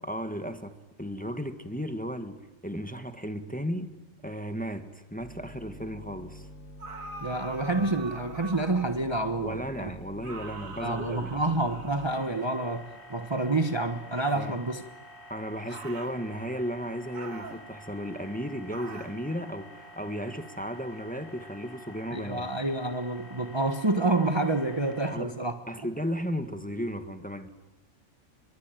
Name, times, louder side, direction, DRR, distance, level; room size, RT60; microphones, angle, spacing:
voice 1, 0.0-0.7 1.0-3.9 4.2-6.5 9.4-11.4 14.3-14.6 15.3-22.5 25.0-25.3 25.7-27.5, equal, 5° left, 1.6 m, -35 dB
sound 1, 5.2-12.2, left 1 dB, 60° left, 3.5 m, -47 dB
sound 2, 6.8-9.1 10.2-12.5 14.1-14.5 15.7-16.2 17.1-17.7 18.7-19.2, right 3 dB, 80° right, 2.4 m, -43 dB
voice 2, 7.2-9.9 10.8-14.8 22.1-25.5, right 2 dB, 20° right, 1.2 m, -28 dB
sound 3, 12.1-25.1, left 1 dB, 40° left, 6.4 m, -49 dB
26.5 x 23.0 x 9.2 m
omnidirectional pair, 1.4 m